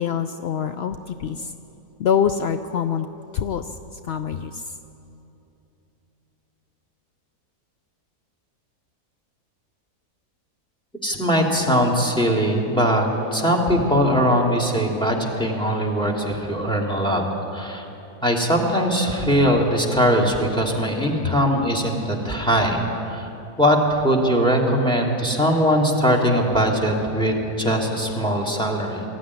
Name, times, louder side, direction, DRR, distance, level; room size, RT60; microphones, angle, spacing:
voice 1, 0.0-1.5 2.0-3.1 3.3-4.7 21.2-21.3, left 8 dB, 70° left, 9 dB, 0.6 m, -25 dB
voice 2, 11.0-17.2 17.5-17.9 18.2-23.3 23.6-29.0, equal, 5° left, 0 dB, 2.6 m, -21 dB
21.0 x 14.5 x 9.8 m, 2.9 s
omnidirectional pair, 1.7 m